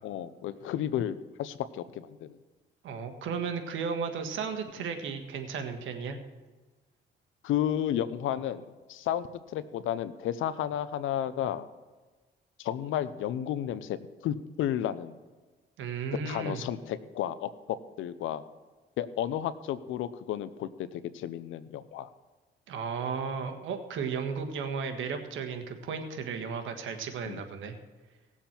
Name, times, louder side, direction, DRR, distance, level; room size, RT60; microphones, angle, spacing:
voice 1, 0.0-2.4 7.4-8.6 8.9-11.7 12.6-14.0 14.2-15.2 16.3-18.4 19.0-22.1 27.3-27.4, left 11 dB, 85° left, 15 dB, 0.7 m, -32 dB
voice 2, 2.8-6.2 15.8-16.6 22.7-27.7, right 5 dB, 80° right, 6 dB, 1.5 m, -34 dB
18.0 x 7.4 x 4.4 m, 1.3 s
cardioid pair, 90°, 20 cm